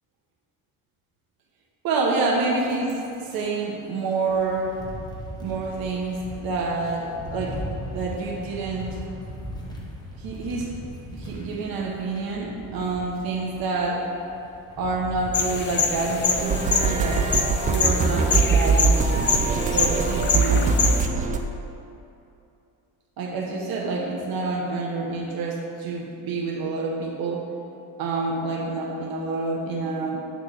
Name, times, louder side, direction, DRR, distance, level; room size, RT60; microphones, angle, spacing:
voice 1, 1.8-4.8 5.4-7.6 7.9-9.0 10.2-10.7 11.1-14.1 14.8-20.8 23.2-27.5 28.0-30.2, right 3 dB, 75° right, -1 dB, 1.0 m, -28 dB
sound 1, 2.5-17.8, equal, 10° left, 1.0 m, -39 dB
sound 2, 15.3-21.1, left 5 dB, 30° left, 0.5 m, -26 dB
sound 3, 16.4-21.4, right 4 dB, 25° right, 0.3 m, -22 dB
9.3 x 3.1 x 6.2 m, 2.7 s
cardioid pair, 140°, 36 cm